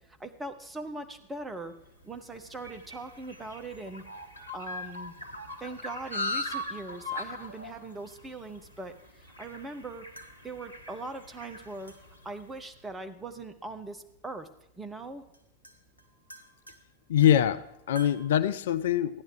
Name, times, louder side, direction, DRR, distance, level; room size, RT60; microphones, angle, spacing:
voice 1, 0.1-1.7 2.0-4.0 4.5-5.1 5.6-10.2 10.4-11.9 12.2-14.5 14.7-15.2, right 2 dB, 10° right, 6 dB, 1.0 m, -40 dB
sound 1, 1.9-12.5, left 2 dB, 85° left, 0.9 m, -40 dB
sound 2, 6.7-6.8 7.3-8.1 10.2-11.0 11.9-12.4 13.9-14.0 15.0-15.1 15.3-18.3, right 2 dB, 85° right, 1.2 m, -52 dB
voice 2, 17.1-19.2, left 10 dB, 60° left, 15 dB, 0.4 m, -24 dB
14.0 x 10.5 x 4.7 m, 0.83 s
figure-of-eight pair, 90°, 0 cm